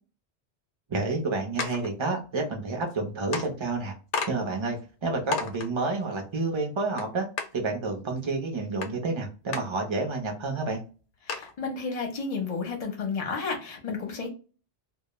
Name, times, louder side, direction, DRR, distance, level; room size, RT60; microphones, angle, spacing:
voice 1, 0.9-3.9 4.3-7.3 7.5-10.8, right 3 dB, 30° right, 1 dB, 0.6 m, -29 dB
sound 1, 1.6-1.9 2.9-3.0 3.3-3.5 4.1-4.3 4.8-4.9 5.3-5.7 7.0-7.1 7.4-7.5 8.8-8.9 9.5-9.6 10.2-10.3 10.6-10.7 11.3-11.5, left 5 dB, 85° left, 0.9 m, -31 dB
voice 2, 11.3-14.3, left 4 dB, 40° left, 2 dB, 0.7 m, -32 dB
2.2 x 2.1 x 2.9 m, 0.35 s
omnidirectional pair, 1.2 m